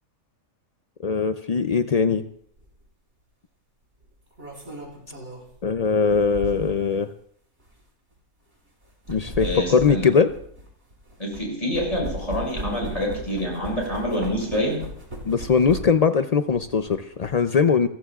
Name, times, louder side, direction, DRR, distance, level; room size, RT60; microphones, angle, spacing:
voice 1, 1.0-2.2 5.6-7.1 9.1-10.3 15.2-17.9, left 5 dB, 90° left, 9 dB, 0.3 m, -21 dB
sound 1, 2.6-2.8 4.0-6.9 7.6-7.8 8.8-11.4 11.7-16.1 16.5-17.3, equal, 50° right, 4.5 m, -37 dB
voice 2, 9.4-10.1 11.2-14.8, equal, 25° left, -2 dB, 6.7 m, -27 dB
27.5 x 14.5 x 2.4 m, 0.63 s
omnidirectional pair, 1.5 m